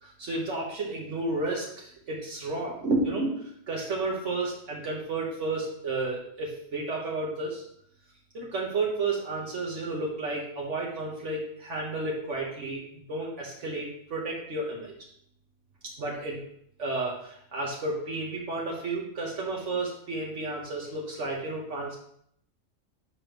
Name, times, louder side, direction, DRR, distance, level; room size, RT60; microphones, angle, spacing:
voice 1, 0.0-7.6 8.3-12.8 13.1-14.9 16.0-16.4 16.8-22.0, right 2 dB, 65° right, -3 dB, 1.4 m, -32 dB
8.1 x 5.1 x 3.0 m, 0.69 s
omnidirectional pair, 1.3 m